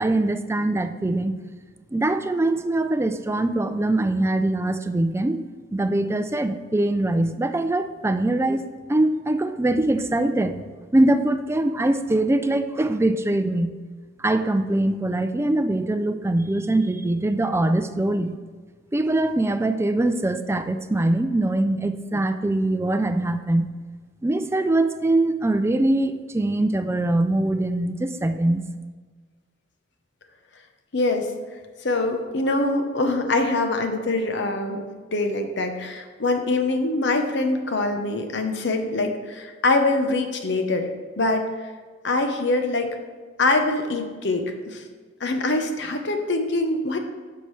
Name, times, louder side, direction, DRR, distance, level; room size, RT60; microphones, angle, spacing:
voice 1, 0.0-1.4 1.9-5.4 5.7-10.6 10.9-13.7 14.2-18.4 18.9-23.7 24.2-28.6, right 1 dB, 15° right, 9 dB, 0.4 m, -22 dB
voice 2, 30.9-31.3 31.8-34.9 35.1-40.9 41.2-41.5 42.0-43.0 43.4-44.8 45.2-47.0, left 2 dB, 65° left, 5 dB, 0.9 m, -24 dB
9.8 x 6.6 x 3.2 m, 1.4 s
head